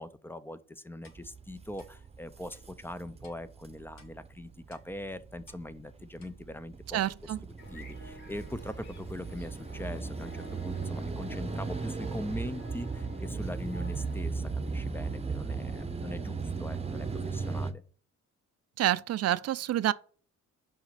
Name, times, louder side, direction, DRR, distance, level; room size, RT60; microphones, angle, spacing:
voice 1, 0.0-7.3 7.7-17.8, left 1 dB, 5° left, 0.6 m, -41 dB
Clock, 1.0-1.2 1.8-1.9 2.5-2.6 3.2-3.4 4.0-4.1 4.7-4.9 5.5-5.6 6.2-6.3, left 4 dB, 60° left, 2.0 m, -58 dB
sound 1, 1.1-17.7, right 4 dB, 20° right, 1.0 m, -37 dB
voice 2, 6.9-7.4 18.8-19.9, right 13 dB, 55° right, 0.5 m, -28 dB
sound 2, 7.6-14.1, equal, 35° left, 1.9 m, -51 dB
5.7 x 5.2 x 5.8 m
cardioid pair, 90°, 30 cm